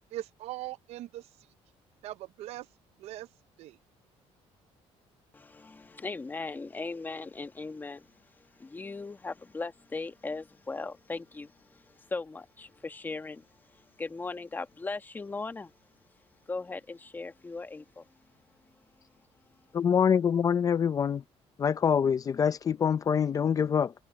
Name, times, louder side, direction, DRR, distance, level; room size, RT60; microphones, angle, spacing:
voice 1, 0.1-1.2 2.0-2.7 3.0-3.3 3.6-3.7, right 15 dB, 70° right, 0.6 m, -40 dB
voice 2, 5.3-15.7 16.5-18.0, left 3 dB, 15° left, 1.3 m, -39 dB
voice 3, 19.7-21.2 21.6-23.9, left 7 dB, 30° left, 0.6 m, -25 dB
cardioid pair, 140°, 11 cm